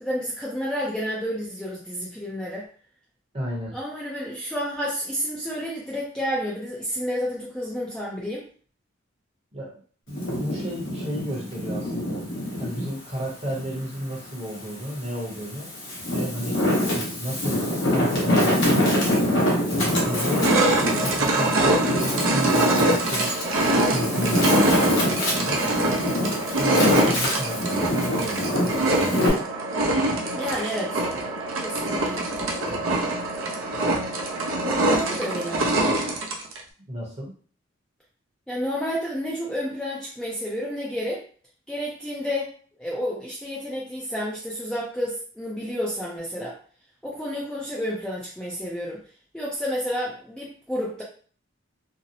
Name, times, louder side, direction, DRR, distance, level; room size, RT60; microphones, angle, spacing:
voice 1, 0.0-2.6 3.7-8.4 30.4-31.1 31.6-32.2 32.5-33.1 34.6-35.9 38.5-41.2 41.7-42.5 42.8-46.6 47.0-49.0 49.3-51.0, equal, 5° left, -5 dB, 0.4 m, -30 dB
voice 2, 3.3-3.7 9.5-9.7 10.1-12.2 12.6-15.7 16.1-16.6 16.9-19.2 19.7-20.7 21.0-23.4 23.9-25.6 26.6-29.2 36.8-37.3, equal, 30° right, -3 dB, 0.8 m, -33 dB
Wind, 10.1-12.9 13.4-14.7 15.3-29.3, left 1 dB, 65° left, 0.9 m, -25 dB
sound 1, 19.2-19.3 19.8-36.6, right 1 dB, 80° right, 0.5 m, -24 dB
2.6 x 2.0 x 2.7 m, 0.43 s
head